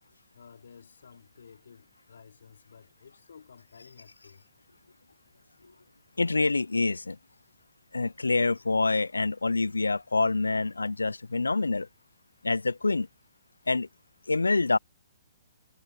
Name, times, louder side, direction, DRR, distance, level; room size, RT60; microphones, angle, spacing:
voice 1, 0.3-4.5, left 6 dB, 65° left, 4.2 m, -53 dB
voice 2, 6.2-7.2 7.9-11.9 12.4-13.1 13.7-13.9 14.3-14.8, left 3 dB, 80° left, 0.7 m, -26 dB
figure-of-eight pair, 125°, 0 cm